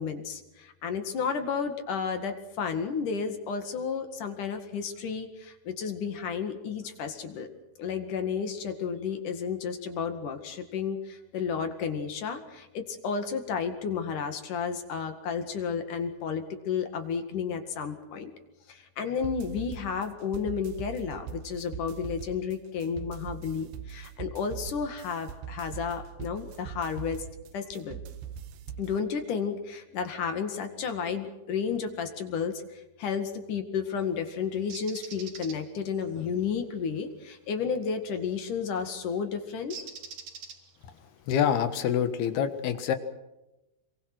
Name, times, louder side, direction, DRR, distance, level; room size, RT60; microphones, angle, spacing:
voice 1, 0.0-7.5 7.8-18.3 18.7-27.3 27.5-28.0 28.8-39.8, left 6 dB, 55° left, 7 dB, 3.2 m, -32 dB
sound 1, 19.2-29.0, right 8 dB, 80° right, 3.2 m, -42 dB
Bird, 34.7-35.6 38.2-38.4 39.7-40.9, right 6 dB, 55° right, 4.1 m, -42 dB
voice 2, 41.3-43.0, left 8 dB, 75° left, 9 dB, 3.4 m, -26 dB
27.5 x 24.0 x 6.2 m, 0.98 s
omnidirectional pair, 4.7 m